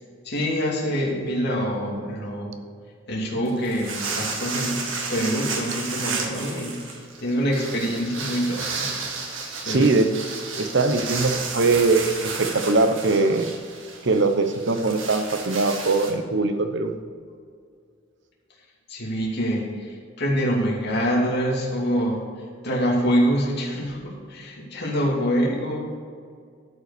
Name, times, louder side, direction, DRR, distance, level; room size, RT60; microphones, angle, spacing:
voice 1, 0.2-2.6 3.1-4.8 5.1-8.9 9.3-10.0 18.9-22.2 22.6-26.0, equal, 60° left, -2 dB, 2.6 m, -25 dB
sound 1, 3.5-16.1, right 4 dB, 85° right, 1.8 m, -32 dB
voice 2, 9.6-10.1 10.6-13.5 14.0-16.9, right 3 dB, 65° right, 8 dB, 0.9 m, -21 dB
12.0 x 5.5 x 6.8 m, 2.1 s
head